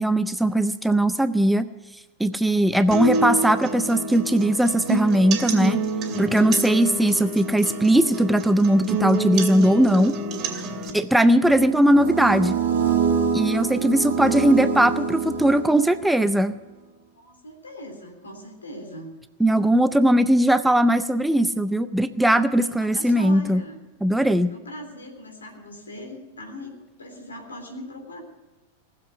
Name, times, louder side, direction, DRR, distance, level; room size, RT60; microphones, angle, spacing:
voice 1, 0.0-1.7 2.2-5.8 6.2-10.2 10.9-12.6 13.3-16.5 19.4-23.6 24.0-24.5, right 1 dB, 5° right, 12 dB, 0.5 m, -19 dB
sound 1, 2.9-10.9, right 2 dB, 30° right, 2.6 m, -27 dB
sound 2, 11.4-16.1, right 6 dB, 60° right, 1.4 m, -25 dB
voice 2, 17.1-19.1 22.6-23.8 24.5-28.2, equal, 75° left, 4 dB, 3.2 m, -40 dB
19.0 x 7.6 x 9.3 m, 1.1 s
figure-of-eight pair, 95°, 0 cm